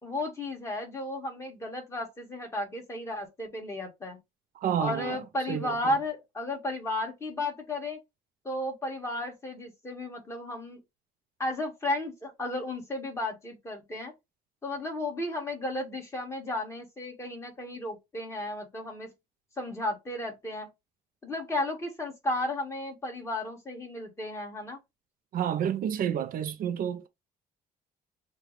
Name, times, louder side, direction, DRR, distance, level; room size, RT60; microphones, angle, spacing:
voice 1, 0.0-4.2 4.8-8.0 8.4-10.8 11.4-14.1 14.6-19.1 19.6-20.7 21.2-24.8, left 1 dB, 15° left, 1.8 m, -34 dB
voice 2, 4.6-5.2 5.5-5.8 25.3-27.1, right 9 dB, 60° right, 0.6 m, -29 dB
6.5 x 2.4 x 3.2 m
cardioid pair, 110°, 17 cm